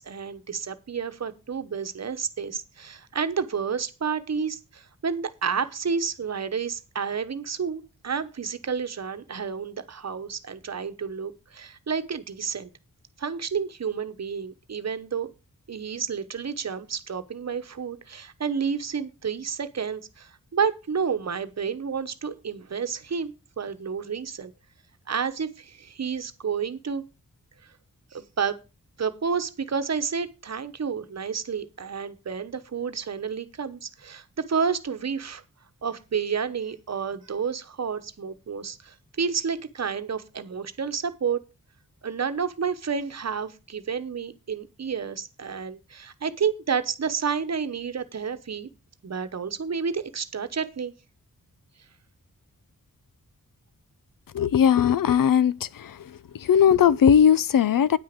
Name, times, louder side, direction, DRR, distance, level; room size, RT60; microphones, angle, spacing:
voice 1, 0.0-12.7 13.2-15.3 15.7-24.5 25.1-27.0 27.6-27.7 28.1-28.6 29.0-35.4 35.8-41.4 42.0-48.7 49.0-50.9, right 6 dB, 50° right, 1.1 m, -30 dB
voice 2, 54.3-56.0 56.4-58.0, left 8 dB, 80° left, 0.6 m, -19 dB
9.5 x 9.4 x 5.1 m
wide cardioid pair, 150°, 33 cm